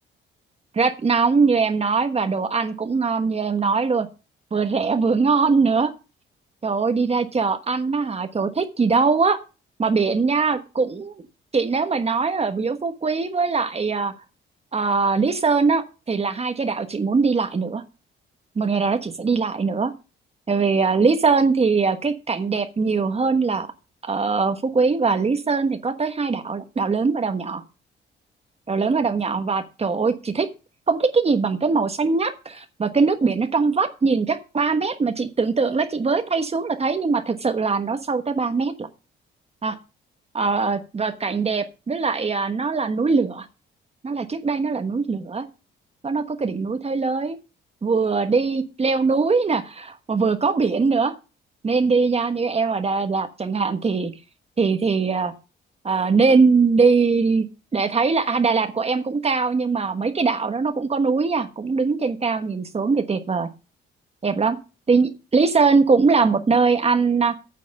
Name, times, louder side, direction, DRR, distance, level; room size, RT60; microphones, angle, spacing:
voice 1, 0.7-4.1 4.5-5.9 6.6-9.4 9.8-11.1 11.5-14.1 14.7-17.8 18.6-19.9 20.5-23.7 24.1-27.6 28.7-30.5 30.9-38.9 39.6-39.8 40.3-43.5 44.0-45.4 46.0-47.4 47.8-51.1 51.6-54.1 54.6-55.3 55.8-57.5 57.7-63.5 64.2-64.6 64.9-67.3, right 4 dB, 30° right, 8 dB, 1.2 m, -21 dB
9.4 x 6.7 x 6.4 m, 0.31 s
cardioid pair, 90°, 20 cm